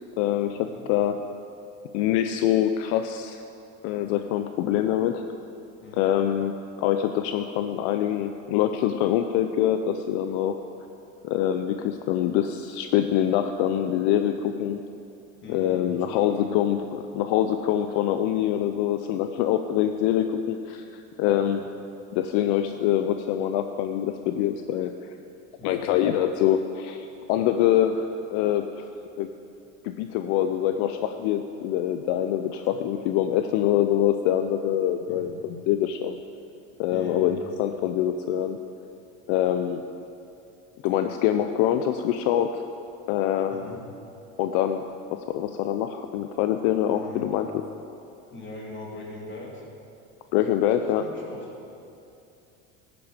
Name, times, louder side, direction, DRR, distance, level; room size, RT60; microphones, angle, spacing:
voice 1, 0.2-1.2 1.9-3.4 3.8-5.2 5.9-10.6 11.2-14.8 15.5-21.6 22.1-25.1 25.6-28.8 29.2-29.3 29.8-36.2 36.8-38.6 39.3-39.8 40.8-42.6 43.1-43.8 44.4-44.8 45.1-47.6 50.3-51.1, left 11 dB, 70° left, 8 dB, 0.7 m, -25 dB
voice 2, 5.8-6.1 15.4-16.5 25.6-25.9 35.1-35.2 36.9-37.4 43.5-43.8 46.9-47.3 48.3-49.6 50.7-51.5, left 2 dB, 30° left, -2 dB, 3.1 m, -41 dB
14.0 x 10.5 x 5.1 m, 2.7 s
supercardioid pair, 110°, 38 cm